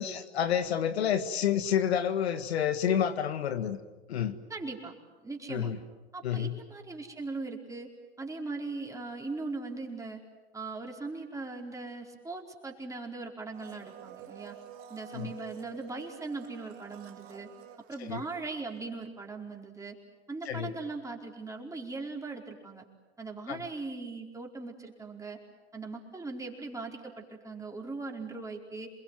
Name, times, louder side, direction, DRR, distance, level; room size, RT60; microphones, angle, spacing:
voice 1, 0.0-3.8 4.1-4.4 5.5-5.8 6.2-6.6 15.1-15.3 18.1-18.2 20.5-20.8 23.5-23.6, left 9 dB, 80° left, 9 dB, 1.9 m, -29 dB
voice 2, 4.5-4.9 5.2-5.7 6.1-7.9 8.2-10.2 10.5-14.6 14.9-17.5 17.9-20.0 20.3-22.8 23.2-25.4 25.7-28.9, right 3 dB, 10° right, 1 dB, 4.7 m, -39 dB
Domestic sounds home sounds, 13.5-18.8 19.0-19.1, right 10 dB, 45° right, 2.5 m, -49 dB
28.5 x 21.5 x 9.3 m, 1.2 s
hypercardioid pair, 110°, 32 cm